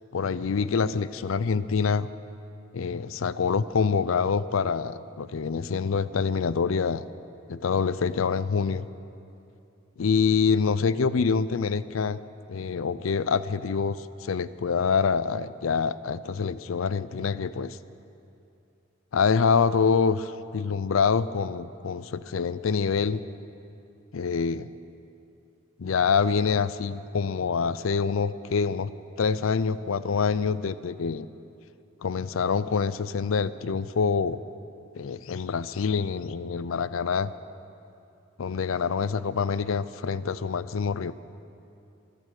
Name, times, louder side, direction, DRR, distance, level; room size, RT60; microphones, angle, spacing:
voice 1, 0.1-2.1 2.7-7.1 7.5-8.9 10.0-12.2 12.5-17.8 19.1-23.2 24.1-24.7 25.8-28.9 29.2-31.3 32.0-34.4 34.9-37.3 38.4-41.1, left 5 dB, 80° left, 16 dB, 0.5 m, -26 dB
23.5 x 8.8 x 6.5 m, 2.7 s
head